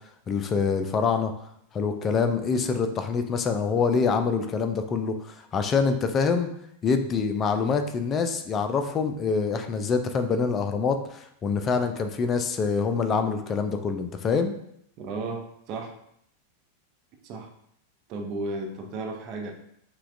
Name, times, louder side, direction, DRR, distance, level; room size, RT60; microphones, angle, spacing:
voice 1, 0.3-1.3 1.7-6.5 6.8-14.5, left 5 dB, 25° left, 7 dB, 0.4 m, -25 dB
voice 2, 15.0-16.0 17.2-17.5 18.1-19.5, right 2 dB, 40° right, 2 dB, 0.7 m, -34 dB
5.6 x 2.3 x 2.5 m, 0.71 s
figure-of-eight pair, 90°, 0 cm